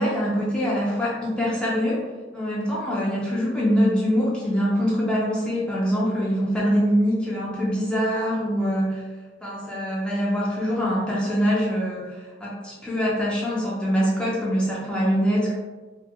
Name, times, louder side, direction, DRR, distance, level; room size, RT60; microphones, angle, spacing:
voice 1, 0.0-2.0 2.3-9.0 9.4-15.5, equal, 5° left, -6 dB, 0.4 m, -24 dB
2.8 x 2.2 x 3.4 m, 1.3 s
head